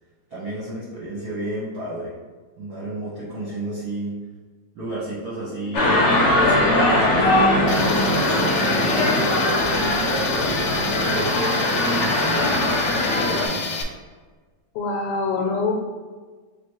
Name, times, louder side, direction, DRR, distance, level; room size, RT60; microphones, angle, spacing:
voice 1, 0.3-2.1 2.6-4.1 4.7-6.1 6.4-11.5 12.1-12.7 13.1-13.8, right 1 dB, 55° right, -7 dB, 1.1 m, -32 dB
sound 1, 5.3-12.0, right 1 dB, 15° left, 0.9 m, -32 dB
sound 2, 5.7-13.5, left 1 dB, 50° left, 0.8 m, -20 dB
Tools, 7.7-13.8, left 4 dB, 75° left, 1.2 m, -29 dB
voice 2, 14.7-15.7, left 3 dB, 90° left, 0 dB, 1.5 m, -24 dB
3.4 x 2.8 x 4.6 m, 1.4 s
omnidirectional pair, 2.4 m